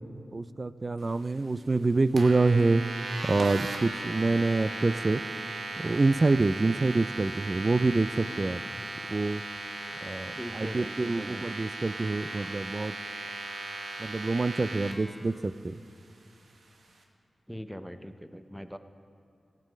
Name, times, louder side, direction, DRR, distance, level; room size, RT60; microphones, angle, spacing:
voice 1, 0.3-2.8 3.2-5.2 5.8-8.6 9.1-9.4 10.0-12.9 14.0-15.8, right 3 dB, 40° right, 15 dB, 0.4 m, -26 dB
sound 1, 2.2-14.9, right 3 dB, 85° right, 1.1 m, -37 dB
voice 2, 10.4-11.5 17.5-18.8, equal, ahead, 8 dB, 0.7 m, -41 dB
16.5 x 7.6 x 5.2 m, 2.7 s
cardioid pair, 60°, 0 cm